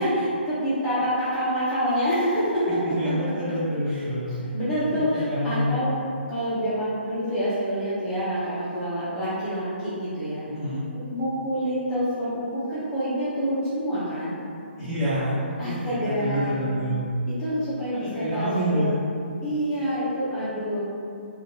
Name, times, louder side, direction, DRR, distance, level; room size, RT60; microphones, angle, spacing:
voice 1, 0.0-2.8 3.9-4.0 4.3-5.9 6.3-10.5 11.1-14.3 15.6-16.6 17.4-18.9 19.4-20.8, equal, 5° left, -12 dB, 0.4 m, -27 dB
voice 2, 2.9-5.7 10.5-10.8 14.8-15.4 15.6-17.0 17.9-18.9, equal, 15° right, -15 dB, 1.2 m, -27 dB
4.3 x 2.2 x 2.6 m, 2.6 s
hypercardioid pair, 175°, 6 cm